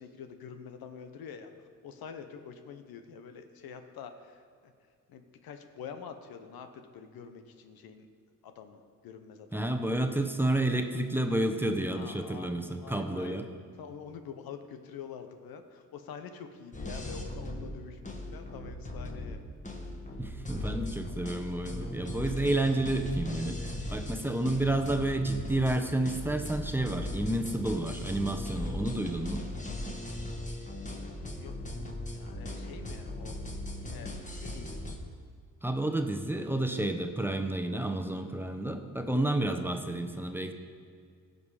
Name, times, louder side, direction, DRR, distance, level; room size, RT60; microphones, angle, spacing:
voice 1, 0.0-4.7 5.1-8.1 8.4-9.7 11.9-12.5 12.8-13.5 13.8-19.4 30.5-33.4 33.8-34.8, left 7 dB, 80° left, 7 dB, 0.9 m, -47 dB
voice 2, 9.5-13.5 20.2-29.4 35.6-40.5, right 1 dB, 5° right, 5 dB, 1.0 m, -30 dB
sound 1, 16.7-35.0, left 1 dB, 20° left, 1.6 m, -38 dB
16.0 x 5.3 x 4.9 m, 2.2 s
cardioid pair, 65°, 36 cm